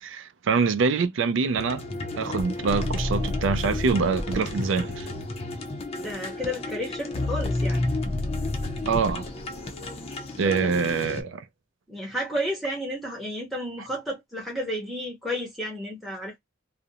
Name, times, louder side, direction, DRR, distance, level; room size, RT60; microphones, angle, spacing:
voice 1, 0.0-1.8 2.2-5.1 8.9-9.3 10.4-11.4, right 5 dB, 70° right, 0.4 m, -25 dB
sound 1, 1.6-11.2, left 2 dB, 30° left, 0.5 m, -31 dB
voice 2, 5.9-7.8 10.4-10.7 11.9-16.4, equal, ahead, 0.7 m, -32 dB
2.4 x 2.0 x 2.6 m
head